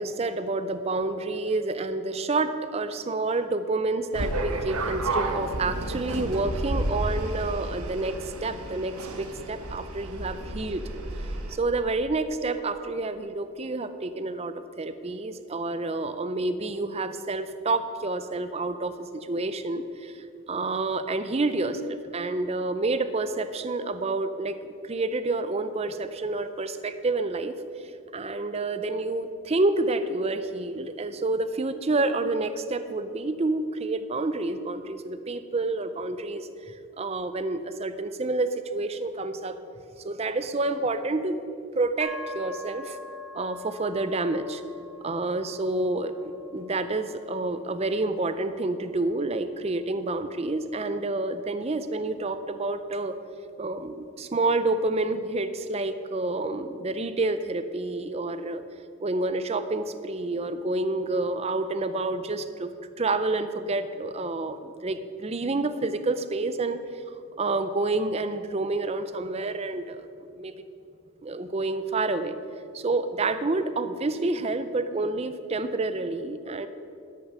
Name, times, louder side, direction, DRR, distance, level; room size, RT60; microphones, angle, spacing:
voice 1, 0.0-10.8 11.5-24.6 24.8-27.6 28.1-39.6 40.0-41.4 41.7-43.0 43.3-44.6 45.0-53.1 53.6-58.6 59.0-66.8 67.4-70.0 70.4-70.5 71.2-72.4 72.7-76.7, right 2 dB, 30° right, 11 dB, 0.4 m, -29 dB
sound 1, 4.1-11.6, right 1 dB, 85° right, 1.1 m, -31 dB
sound 2, 42.0-55.7, left 4 dB, 70° left, 1.4 m, -46 dB
13.0 x 6.6 x 6.6 m, 2.5 s
head